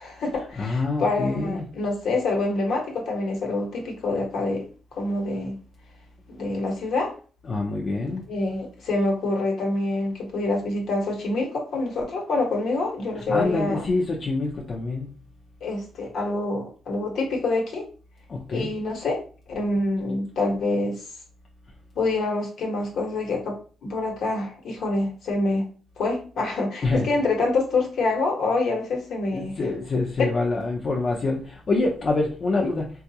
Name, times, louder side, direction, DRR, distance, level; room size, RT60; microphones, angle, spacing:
voice 1, 0.0-4.6 5.0-5.6 6.3-7.1 8.3-13.8 15.6-17.8 18.5-19.2 19.5-21.0 22.0-23.6 23.8-25.7 26.0-29.5 30.2-30.3 32.6-32.7, left 2 dB, 65° left, 1.0 m, -26 dB
voice 2, 0.6-1.6 7.4-8.2 13.3-15.1 18.3-18.7 26.8-27.1 29.3-32.9, left 3 dB, 40° left, 0.5 m, -26 dB
3.8 x 2.3 x 2.7 m
cardioid pair, 145°, 0 cm